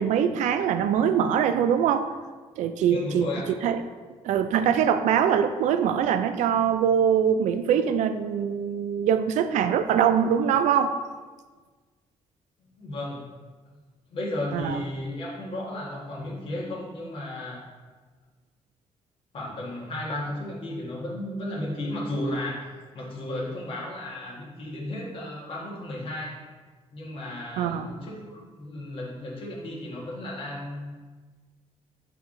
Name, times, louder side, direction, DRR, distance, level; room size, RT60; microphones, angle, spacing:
voice 1, 0.0-2.1 2.6-3.3 3.6-3.8 4.2-10.9 14.5-14.8 27.6-27.9, right 8 dB, 90° right, 10 dB, 0.4 m, -23 dB
voice 2, 2.9-3.5 12.6-13.3 14.1-17.6 19.3-26.4 26.9-30.9, left 1 dB, 50° left, -3 dB, 1.4 m, -34 dB
7.6 x 3.5 x 3.7 m, 1.4 s
cardioid pair, 160°, 12 cm